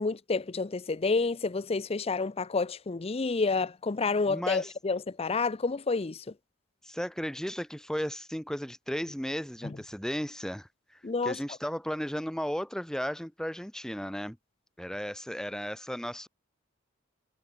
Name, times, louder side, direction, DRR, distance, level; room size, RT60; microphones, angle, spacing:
voice 1, 0.0-6.3 9.6-9.8 11.0-11.4, left 4 dB, 30° left, 0.5 m, -29 dB
voice 2, 4.3-4.7 6.8-14.4 14.8-16.3, equal, 5° left, 1.7 m, -35 dB
head